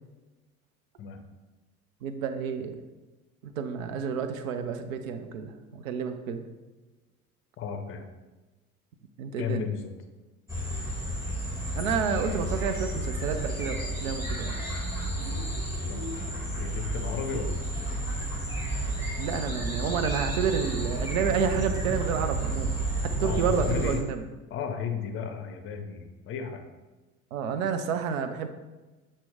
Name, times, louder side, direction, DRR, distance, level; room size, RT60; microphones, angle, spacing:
voice 1, 2.0-2.8 3.4-6.4 9.2-9.6 11.7-14.6 19.2-22.7 23.2-24.3 27.3-28.5, right 6 dB, 65° right, 8 dB, 0.6 m, -30 dB
voice 2, 7.6-8.0 9.4-9.9 15.8-18.0 23.2-24.0 24.5-26.6, left 6 dB, 30° left, 5 dB, 0.6 m, -34 dB
sound 1, 10.5-24.0, right 1 dB, 5° right, 1.3 m, -31 dB
5.8 x 2.1 x 3.6 m, 1.2 s
figure-of-eight pair, 65°, 43 cm